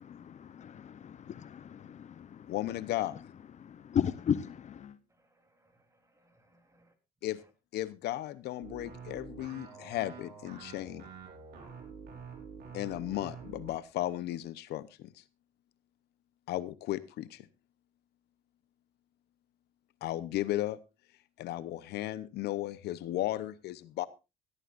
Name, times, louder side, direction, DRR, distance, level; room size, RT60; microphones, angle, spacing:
voice 1, 0.1-2.5 3.6-4.9, left 8 dB, 45° left, 0.8 m, -35 dB
voice 2, 2.5-3.2 7.2-7.4 7.7-11.1 12.7-15.1 16.5-17.5 20.0-20.8 21.4-24.1, left 14 dB, 75° left, 0.9 m, -35 dB
voice 3, 5.1-6.9 7.2-7.5, right 1 dB, 20° right, 3.5 m, -69 dB
sound 1, 8.6-13.8, right 6 dB, 70° right, 5.6 m, -47 dB
18.5 x 13.0 x 2.5 m
cardioid pair, 110°, 17 cm